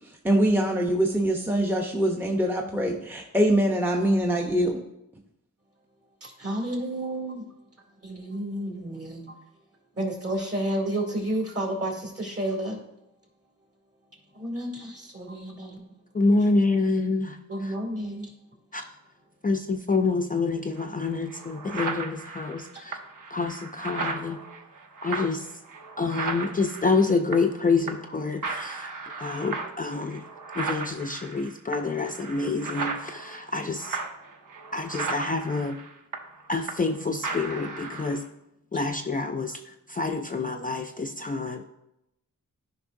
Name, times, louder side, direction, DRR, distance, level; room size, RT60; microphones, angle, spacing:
voice 1, 0.2-4.8, right 1 dB, 5° right, 0 dB, 0.7 m, -23 dB
voice 2, 6.2-7.4 8.0-9.4 10.0-12.8 14.3-15.9 17.5-18.3 22.7-22.8, right 1 dB, 45° right, 1 dB, 2.3 m, -31 dB
voice 3, 16.1-17.7 18.7-18.9 19.4-23.0 23.3-24.4 25.0-25.5 26.0-28.9 29.2-30.3 30.5-34.0 34.7-35.8 36.5-38.2 38.7-41.7, left 3 dB, 25° left, 4 dB, 0.4 m, -27 dB
sound 1, 20.8-20.9 21.3-27.6 27.9-28.2 28.4-37.0 37.2-38.2, right 4 dB, 65° right, 0.9 m, -36 dB
12.5 x 5.3 x 2.6 m, 0.87 s
wide cardioid pair, 100°, 34 cm